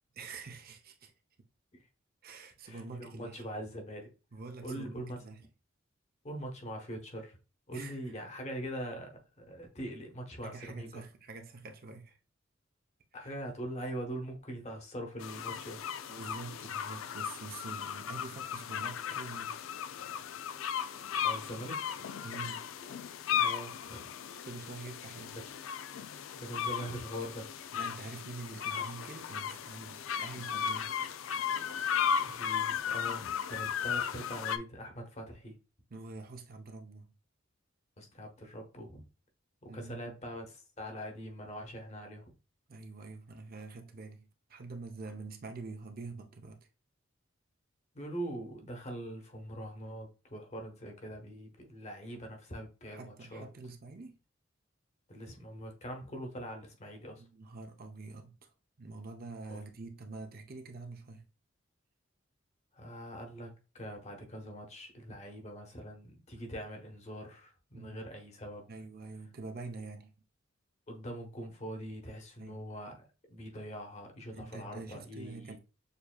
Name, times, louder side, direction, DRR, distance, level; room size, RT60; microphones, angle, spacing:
voice 1, 0.2-1.1 1.4-1.5 2.2-3.4 4.3-5.4 7.7-8.0 10.4-12.2 13.2-13.3 16.1-19.6 22.2-22.7 24.4-25.4 27.7-30.9 35.9-37.1 39.7-40.1 42.7-46.7 52.9-54.2 57.2-58.5 58.8-61.3 67.7-68.0 68.7-70.1 72.4-72.6 74.3-75.6, right 3 dB, 50° right, 0.7 m, -46 dB
voice 2, 2.6-4.1 4.6-5.2 6.2-7.4 7.7-11.0 13.1-15.8 21.2-21.9 23.4-24.1 25.4-25.5 26.4-27.5 32.2-35.6 38.0-39.0 39.6-42.3 47.9-53.5 55.1-57.2 59.5-59.6 62.7-68.6 70.9-75.6, equal, 35° left, 1.1 m, -43 dB
sound 1, 15.2-34.6, left 8 dB, 85° left, 0.4 m, -36 dB
6.7 x 2.8 x 2.3 m
head